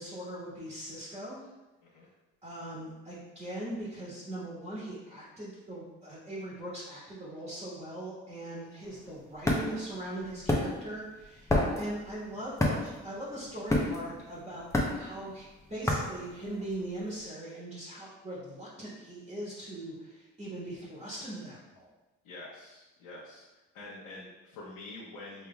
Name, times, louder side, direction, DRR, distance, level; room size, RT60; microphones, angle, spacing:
voice 1, 0.0-1.5 2.4-14.7 14.9-21.9, right 1 dB, 20° right, -7 dB, 1.4 m, -40 dB
sound 1, 8.8-17.0, left 1 dB, 10° left, 0.7 m, -30 dB
voice 2, 22.2-23.4 23.7-25.5, left 2 dB, 85° left, -8 dB, 1.2 m, -46 dB
5.6 x 3.1 x 2.3 m, 1.1 s
cardioid pair, 90°, 30 cm